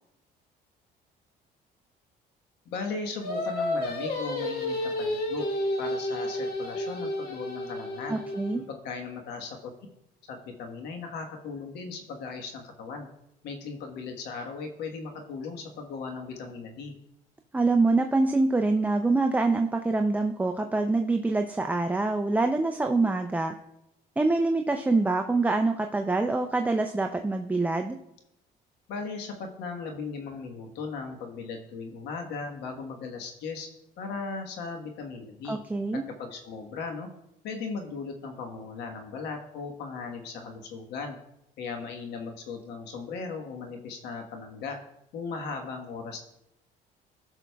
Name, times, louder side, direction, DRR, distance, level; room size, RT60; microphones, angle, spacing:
voice 1, 2.7-5.5 5.8-8.2 8.5-9.7 10.3-13.1 13.4-16.9 28.9-33.7 34.0-35.6 35.9-37.1 37.4-41.2 41.6-44.8 45.1-46.2, left 4 dB, 80° left, 3 dB, 1.3 m, -37 dB
Singing, 3.2-8.6, left 1 dB, 65° left, 1.8 m, -31 dB
voice 2, 8.1-8.6 17.5-23.5 24.2-28.0 35.5-36.0, right 3 dB, 10° right, 5 dB, 0.4 m, -25 dB
15.5 x 6.2 x 2.3 m, 0.84 s
cardioid pair, 110°, 17 cm